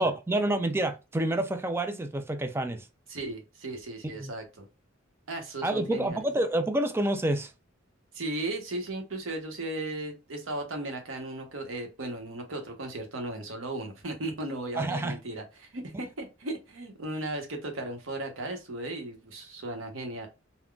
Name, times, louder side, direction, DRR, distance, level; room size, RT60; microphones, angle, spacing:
voice 1, 0.0-2.9 4.2-4.3 5.6-7.5 14.8-15.2, right 1 dB, 10° right, 0.3 m, -28 dB
voice 2, 3.1-4.7 5.3-6.2 8.1-20.3, right 2 dB, 75° right, 0.9 m, -36 dB
3.7 x 2.2 x 2.3 m
head